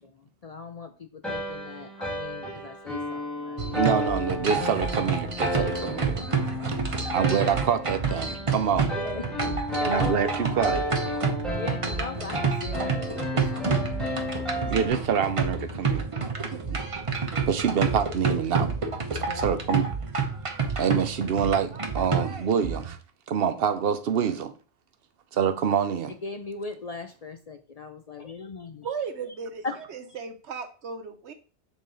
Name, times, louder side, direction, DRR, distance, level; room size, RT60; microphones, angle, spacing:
voice 1, 0.0-3.8 6.8-7.1 9.0-9.3 9.8-10.9 11.5-14.7 16.6-16.7 19.1-19.7 26.1-28.9 29.3-29.4 29.6-29.8, left 3 dB, 50° left, 0.5 m, -39 dB
sound 1, 1.2-14.9, left 1 dB, ahead, 1.5 m, -33 dB
sound 2, 3.6-22.9, right 4 dB, 35° right, 0.8 m, -29 dB
voice 2, 3.7-6.3 7.1-8.9 9.9-10.8 14.7-16.1 16.5-16.8 17.5-18.7 19.1-19.9 20.8-23.0 23.3-24.5 25.3-26.1, right 7 dB, 65° right, 0.9 m, -26 dB
voice 3, 28.8-29.6 29.9-31.3, right 5 dB, 85° right, 1.2 m, -35 dB
7.1 x 4.1 x 3.8 m
omnidirectional pair, 1.1 m